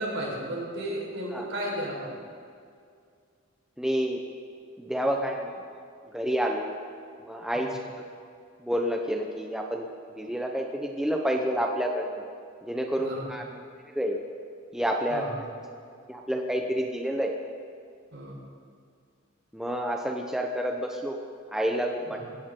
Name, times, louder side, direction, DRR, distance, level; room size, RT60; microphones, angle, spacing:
voice 1, 0.0-2.1 5.0-5.2 7.5-7.7 13.0-13.3 15.1-15.3 18.1-18.4 22.1-22.3, right 1 dB, 60° right, -3 dB, 4.8 m, -34 dB
voice 2, 3.8-4.2 4.8-5.6 6.1-6.6 7.2-7.8 8.6-9.8 10.2-12.2 12.6-13.4 13.9-14.2 14.7-15.3 16.1-17.3 19.5-21.2 21.5-22.2, equal, 5° right, 1 dB, 0.9 m, -29 dB
21.0 x 17.0 x 3.9 m, 2.2 s
head